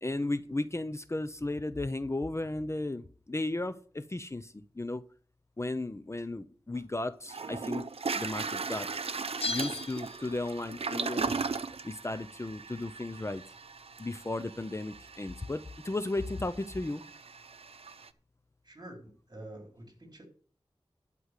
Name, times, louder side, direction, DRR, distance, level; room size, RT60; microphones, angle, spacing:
voice 1, 0.0-5.0 5.6-7.9 8.2-8.9 9.5-11.3 11.8-13.4 14.0-17.0, left 2 dB, 30° left, 12 dB, 0.7 m, -35 dB
Toilet flush, 6.7-6.8 7.3-18.1, right 4 dB, 80° right, 0.7 m, -38 dB
Bell, 9.4-10.8 11.1-11.2, left 4 dB, 80° left, 0.6 m, -37 dB
voice 2, 18.6-20.3, right 1 dB, 45° right, 2 dB, 4.0 m, -48 dB
11.5 x 5.3 x 8.2 m, 0.43 s
wide cardioid pair, 65°, 10 cm